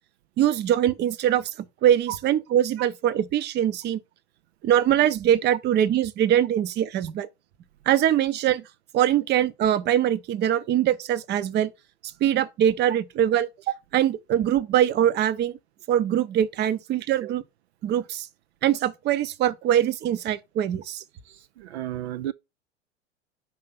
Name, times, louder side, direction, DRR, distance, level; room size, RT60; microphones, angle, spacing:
voice 1, 0.4-4.0 4.6-7.3 7.9-8.6 8.9-11.7 12.0-15.6 15.9-17.4 17.8-18.3 18.6-21.0, right 11 dB, 30° right, 0.6 m, -23 dB
voice 2, 21.3-22.3, right 13 dB, 70° right, 0.5 m, -33 dB
5.5 x 3.2 x 5.6 m
figure-of-eight pair, 85°, 34 cm